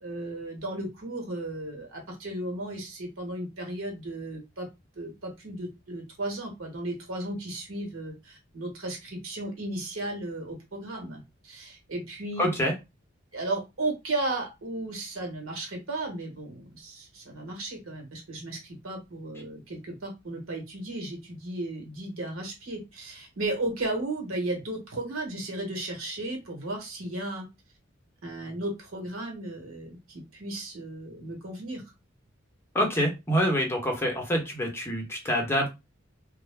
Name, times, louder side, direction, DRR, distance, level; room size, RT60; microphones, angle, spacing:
voice 1, 0.0-4.7 4.9-12.5 13.3-27.5 28.2-31.8, right 2 dB, 85° right, 1 dB, 1.1 m, -35 dB
voice 2, 12.4-12.7 32.7-35.7, equal, 10° left, 1 dB, 0.8 m, -26 dB
2.2 x 2.1 x 3.3 m, 0.24 s
head